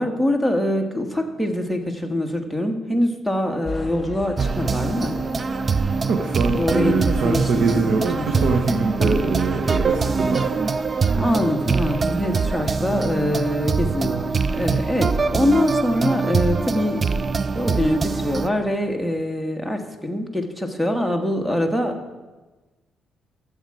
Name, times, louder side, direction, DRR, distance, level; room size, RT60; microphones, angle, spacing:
voice 1, 0.0-5.2 6.6-7.5 7.7-8.5 9.0-9.2 11.1-17.0 17.5-22.0, left 1 dB, 5° right, 5 dB, 1.4 m, -24 dB
sound 1, 3.6-13.5, left 2 dB, 20° left, 2.8 m, -39 dB
sound 2, 4.4-18.5, right 4 dB, 35° right, 0.4 m, -23 dB
voice 2, 6.1-10.6, right 4 dB, 70° right, 3 dB, 1.1 m, -23 dB
13.0 x 7.4 x 4.8 m, 1.2 s
cardioid pair, 90°, 0 cm